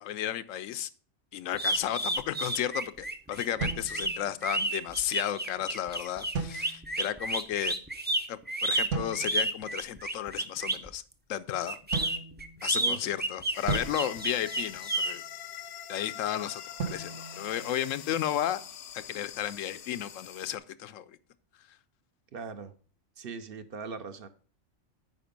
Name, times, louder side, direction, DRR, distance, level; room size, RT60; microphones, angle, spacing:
voice 1, 0.0-0.9 1.3-7.7 8.3-11.0 11.3-11.8 12.6-15.2 15.9-16.6 16.9-18.6 18.9-21.2, left 11 dB, 90° left, 14 dB, 1.0 m, -33 dB
sound 1, 1.5-10.9 11.7-15.1, right 2 dB, 15° right, 0.4 m, -31 dB
sound 2, 3.6-4.7 6.3-7.1 8.9-9.6 11.9-13.0 13.7-15.1 16.8-18.3, right 4 dB, 70° right, 1.5 m, -37 dB
sound 3, 13.5-20.6, left 10 dB, 60° left, 0.7 m, -44 dB
voice 2, 22.3-22.7 23.2-24.3, right 5 dB, 55° right, 11 dB, 0.8 m, -40 dB
9.4 x 5.0 x 5.2 m, 0.41 s
omnidirectional pair, 1.3 m